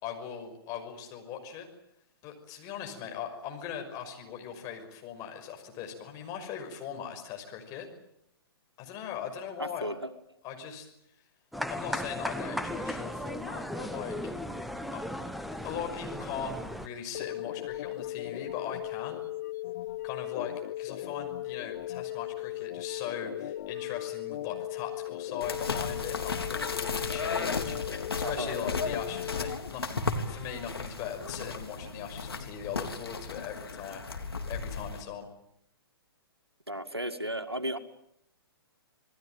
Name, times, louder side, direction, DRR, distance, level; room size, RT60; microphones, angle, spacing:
voice 1, 0.0-1.7 2.2-7.9 8.8-9.9 10.4-10.9 11.7-14.2 14.9-19.2 20.0-34.0 34.5-35.3, left 8 dB, 25° left, 4 dB, 6.0 m, -40 dB
voice 2, 9.6-10.1 28.2-28.5 36.7-37.8, equal, 90° right, 8 dB, 2.1 m, -34 dB
sound 1, 11.5-16.9, left 1 dB, ahead, 1.1 m, -36 dB
sound 2, 17.1-29.6, left 14 dB, 45° left, 1.0 m, -37 dB
sound 3, 25.4-35.0, left 4 dB, 70° left, 3.6 m, -35 dB
28.0 x 19.5 x 9.2 m, 0.75 s
figure-of-eight pair, 120°, 13 cm